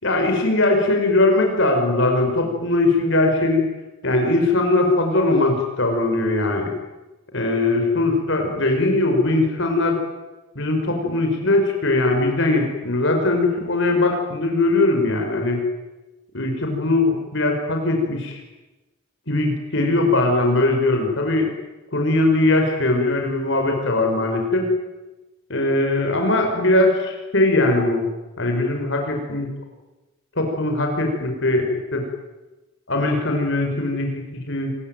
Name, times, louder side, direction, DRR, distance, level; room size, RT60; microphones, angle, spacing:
voice 1, 0.0-3.6 4.0-6.7 7.3-10.0 10.6-15.6 16.3-18.4 19.3-21.5 21.9-24.7 25.5-28.0 28.4-29.5 30.4-32.0 32.9-34.7, left 2 dB, 60° left, 3 dB, 5.8 m, -20 dB
27.5 x 23.0 x 9.4 m, 1.1 s
head